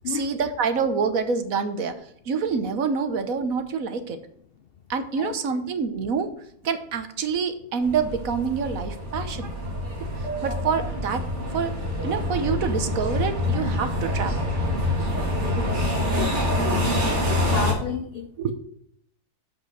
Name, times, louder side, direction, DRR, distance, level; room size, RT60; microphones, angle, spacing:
voice 1, 0.1-1.9 2.3-4.2 4.9-6.3 6.6-9.5 10.2-11.2 11.5-11.7 12.0-14.3 18.4-18.5, right 5 dB, 60° right, 9 dB, 1.3 m, -26 dB
sound 1, 7.8-17.7, left 1 dB, 45° right, 2.6 m, -26 dB
voice 2, 15.4-16.4 16.6-16.9 17.3-18.5, left 8 dB, 85° left, 10 dB, 0.5 m, -33 dB
7.6 x 5.8 x 6.1 m, 0.68 s
omnidirectional pair, 1.7 m